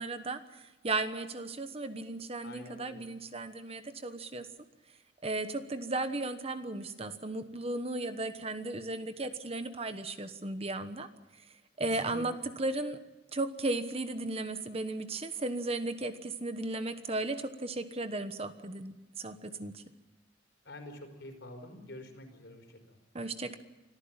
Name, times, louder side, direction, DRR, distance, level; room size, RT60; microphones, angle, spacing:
voice 1, 0.0-4.5 5.2-11.1 11.8-13.0 13.3-19.8 23.1-23.6, right 2 dB, 30° right, 10 dB, 1.2 m, -35 dB
voice 2, 2.4-3.0 11.8-12.2 20.6-23.0, left 1 dB, 65° left, 5 dB, 4.8 m, -47 dB
25.0 x 14.5 x 8.9 m, 1.1 s
head